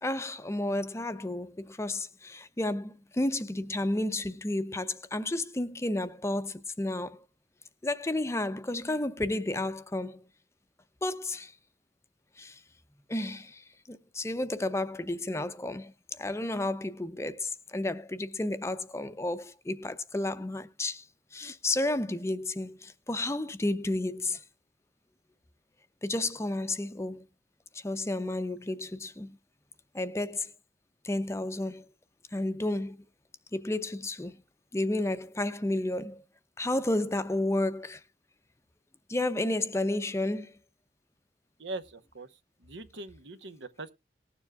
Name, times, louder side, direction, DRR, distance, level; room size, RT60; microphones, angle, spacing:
voice 1, 0.0-7.2 7.8-10.2 11.0-11.5 12.4-12.6 13.1-21.1 21.3-24.4 26.0-27.3 27.7-29.3 29.9-30.5 31.0-31.9 32.3-33.0 33.5-34.4 34.7-36.2 36.6-38.0 39.1-40.6, left 2 dB, 15° left, 0.5 m, -32 dB
voice 2, 41.6-42.3 42.6-43.9, right 2 dB, 85° right, 1.0 m, -41 dB
19.5 x 7.1 x 2.3 m
head